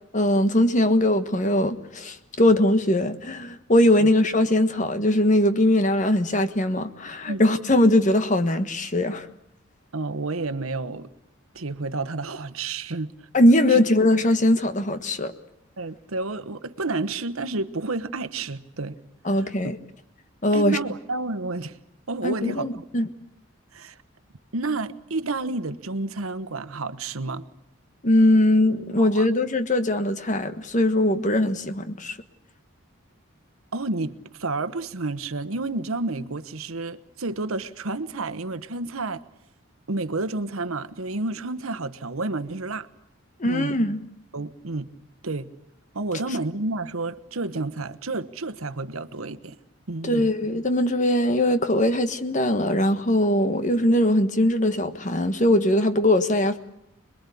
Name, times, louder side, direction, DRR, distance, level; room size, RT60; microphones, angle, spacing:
voice 1, 0.1-9.3 13.3-15.3 19.2-19.8 20.4-20.8 22.2-23.1 28.0-32.2 43.4-44.0 50.0-56.6, left 1 dB, 35° left, 1.4 m, -21 dB
voice 2, 9.9-11.1 11.5-13.1 13.7-13.8 15.8-19.0 19.3-19.4 20.5-21.8 22.1-22.7 23.7-24.0 24.5-27.5 29.0-29.3 33.7-39.2 39.9-42.9 43.4-43.8 44.3-44.9 45.2-45.5 45.9-49.6 49.9-50.3, right 3 dB, 85° right, 1.2 m, -30 dB
26.5 x 21.5 x 8.5 m
head